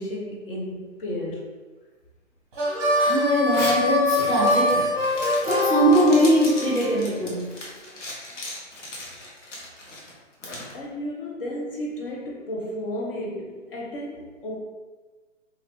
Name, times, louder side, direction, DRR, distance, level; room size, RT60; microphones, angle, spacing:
voice 1, 0.0-1.5 10.7-14.6, left 1 dB, 45° left, -3 dB, 0.7 m, -33 dB
Harmonica, 2.5-6.8, left 2 dB, 25° right, 0.8 m, -23 dB
voice 2, 2.9-4.9 5.5-7.5, right 1 dB, ahead, -11 dB, 0.5 m, -21 dB
Zipper (clothing), 3.4-10.7, left 1 dB, 65° left, 1.0 m, -37 dB
2.9 x 2.5 x 2.9 m, 1.3 s
hypercardioid pair, 140°, 39 cm